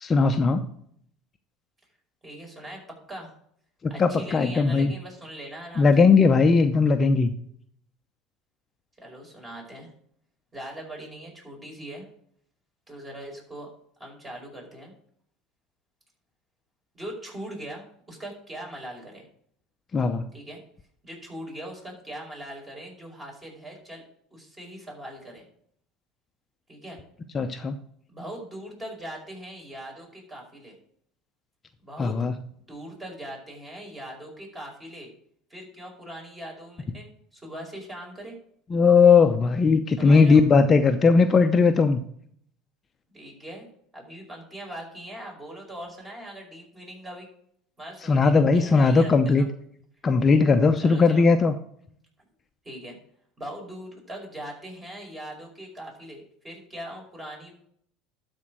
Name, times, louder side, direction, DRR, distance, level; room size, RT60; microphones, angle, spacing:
voice 1, 0.0-0.7 3.8-4.9 5.8-7.3 19.9-20.3 27.3-27.8 32.0-32.3 38.7-42.0 48.1-49.4 50.0-51.5, left 4 dB, 30° left, 7 dB, 0.7 m, -18 dB
voice 2, 2.2-2.8 3.1-3.3 3.9-6.1 9.0-9.9 10.5-12.1 12.9-13.7 14.0-14.9 16.9-19.2 20.3-20.6 21.0-24.0 24.3-25.5 26.7-27.0 28.1-30.8 31.8-32.2 32.7-35.1 35.5-38.3 40.0-40.4 43.1-43.6 43.9-47.3 47.8-49.5 50.8-51.3 52.6-53.0 53.4-57.5, right 1 dB, 20° right, -1 dB, 5.1 m, -40 dB
12.5 x 4.5 x 6.3 m, 0.66 s
hypercardioid pair, 85°, 0 cm